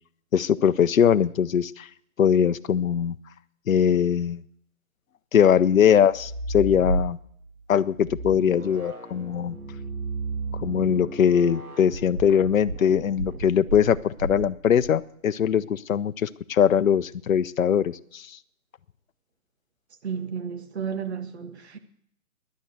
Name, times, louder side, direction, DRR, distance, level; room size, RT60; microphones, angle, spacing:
voice 1, 0.3-1.9 2.2-3.2 3.7-4.4 5.3-7.2 7.7-9.6 10.6-18.4, left 8 dB, 65° left, 0.7 m, -21 dB
sound 1, 6.0-7.4 7.9-14.9, right 3 dB, 80° right, 2.5 m, -33 dB
voice 2, 20.0-21.8, right 7 dB, 50° right, 1.6 m, -32 dB
12.0 x 10.5 x 8.1 m
hypercardioid pair, 160°, 43 cm